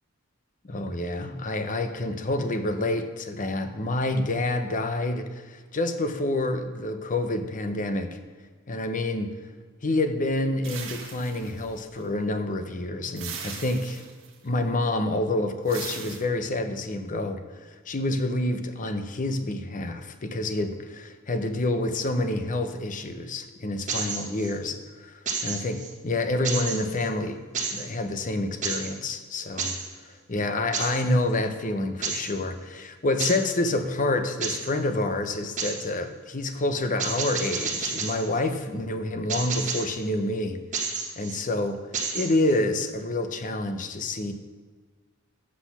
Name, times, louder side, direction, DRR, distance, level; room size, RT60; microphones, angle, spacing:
voice 1, 0.6-8.2 8.7-9.4 9.8-14.0 14.4-27.4 27.7-29.8 30.1-40.6 41.2-41.8 42.1-44.3, left 2 dB, 40° left, 8 dB, 0.7 m, -28 dB
sound 1, 10.6-12.1 13.2-14.4 15.7-16.2, right 6 dB, 65° right, 1.2 m, -39 dB
sound 2, 23.9-24.5 25.3-25.9 26.4-27.1 27.5-27.9 28.6-29.0 29.6-29.9 30.7-31.1 32.0-32.3 33.2-33.5 34.4-34.7 35.6-35.9 37.0-38.3 39.3-40.0 40.7-41.4 41.9-42.6, right 5 dB, 35° right, 1.1 m, -31 dB
8.0 x 6.1 x 5.9 m, 1.5 s
head